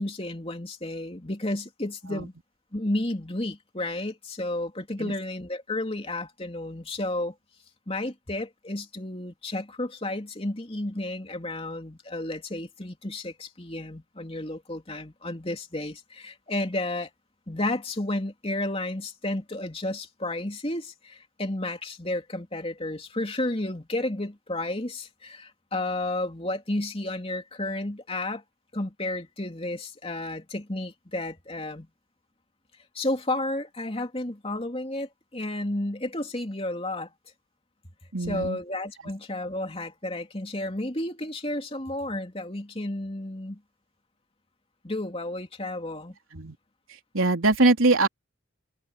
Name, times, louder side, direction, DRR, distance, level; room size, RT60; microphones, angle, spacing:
voice 1, 0.0-2.3 2.7-7.3 7.9-17.1 17.5-28.4 28.7-31.9 32.9-37.1 38.3-43.6 44.8-46.1, left 1 dB, 30° left, 3.0 m, -32 dB
voice 2, 38.1-38.6 46.3-46.6 47.1-48.1, right 2 dB, 85° right, 3.5 m, -22 dB
head